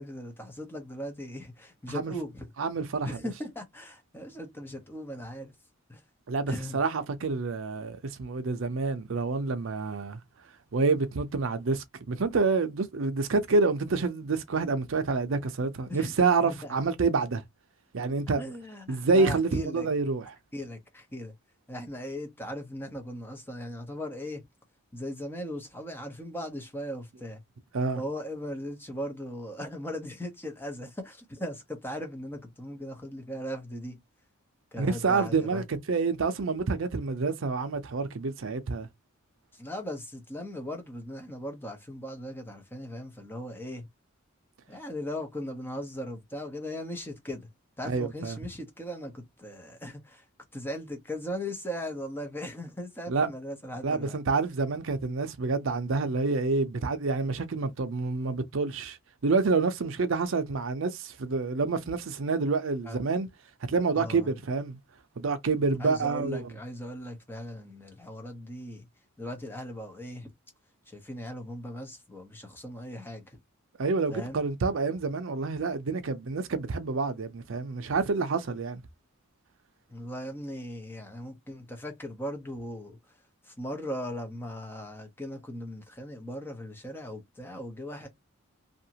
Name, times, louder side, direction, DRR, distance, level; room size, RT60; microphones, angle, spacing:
voice 1, 0.0-2.5 3.1-5.5 5.9-6.0 6.5-6.8 15.9-16.1 16.4-16.8 18.3-19.9 20.5-21.3 21.7-24.4 24.9-27.4 28.0-34.0 34.7-35.6 39.5-43.9 44.7-47.5 47.8-50.2 50.5-54.2 62.8-63.0 63.9-64.3 65.8-68.9 69.2-70.3 70.9-73.4 74.1-74.4 79.9-83.0 83.4-88.1, equal, 10° left, 0.7 m, -38 dB
voice 2, 2.6-3.2 6.3-10.2 10.7-17.4 17.9-18.5 18.9-20.3 27.7-28.0 34.8-38.9 47.8-48.4 53.1-53.3 53.8-59.0 59.2-63.3 63.7-64.8 65.2-66.5 73.8-78.8, right 4 dB, 70° right, 0.6 m, -28 dB
2.7 x 2.5 x 2.8 m
head